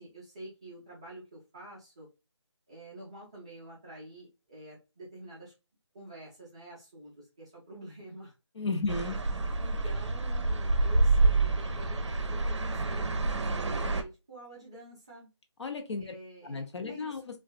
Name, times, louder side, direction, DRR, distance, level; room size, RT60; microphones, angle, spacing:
voice 1, 0.0-2.1 2.7-5.5 5.9-8.3 9.6-15.3 16.0-17.3, right 1 dB, 10° right, 0.3 m, -48 dB
voice 2, 8.6-9.3 15.6-16.1 16.4-17.4, left 3 dB, 70° left, 0.6 m, -34 dB
sound 1, 8.9-14.0, right 2 dB, 70° right, 0.5 m, -27 dB
2.4 x 2.3 x 2.2 m
figure-of-eight pair, 155°, 15 cm